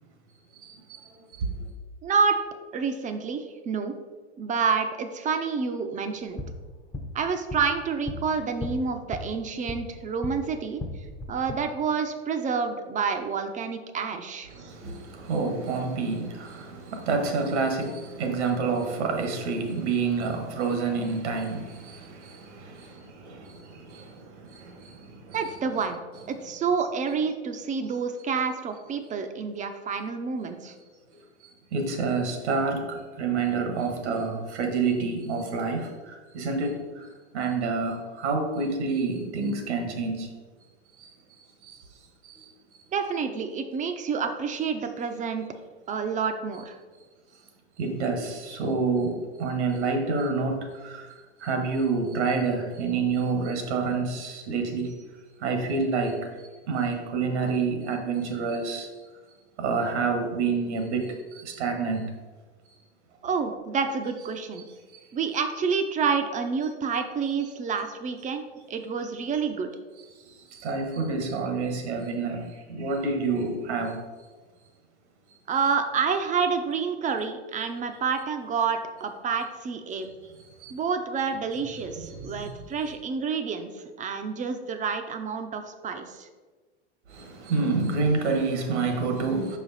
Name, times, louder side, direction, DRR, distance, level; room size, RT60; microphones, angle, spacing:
voice 1, 2.0-2.4 2.7-4.0 4.4-6.4 7.1-10.8 11.3-14.5 25.3-26.0 26.3-30.7 42.9-45.5 45.9-46.8 63.2-64.6 65.1-69.7 75.5-80.1 80.7-86.3, right 5 dB, 20° right, 7 dB, 0.6 m, -28 dB
sound 1, 6.2-10.4 10.7-11.5, left 2 dB, 10° left, 0.7 m, -37 dB
voice 2, 14.5-22.9 23.2-24.1 24.6-25.0 25.3-25.5 26.1-26.2 31.7-35.9 36.3-36.8 37.3-40.3 47.8-51.0 51.4-54.9 55.4-56.2 56.7-58.9 59.6-61.1 61.4-62.0 70.6-74.0 80.6-80.7 82.1-82.4 87.1-89.6, right 4 dB, 80° right, 4 dB, 1.4 m, -28 dB
5.5 x 4.9 x 4.0 m, 1.3 s
hypercardioid pair, 110°, 34 cm